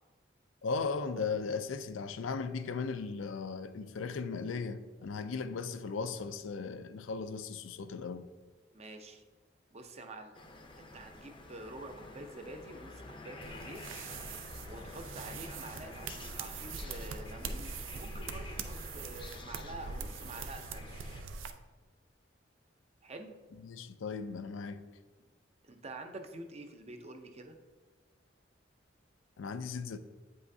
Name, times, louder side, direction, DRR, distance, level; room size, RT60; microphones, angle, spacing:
voice 1, 0.6-8.3 23.6-24.8 29.4-30.0, left 4 dB, 85° left, 0.4 m, -37 dB
voice 2, 8.7-9.2 9.7-10.4 10.8-13.9 14.7-20.9 23.0-23.3 25.6-27.6, right 2 dB, 35° right, 0.6 m, -47 dB
sound 1, 10.3-21.2, left 2 dB, 25° left, 0.6 m, -49 dB
sound 2, 13.4-21.5, right 4 dB, 85° right, 0.5 m, -43 dB
8.2 x 5.5 x 2.7 m
head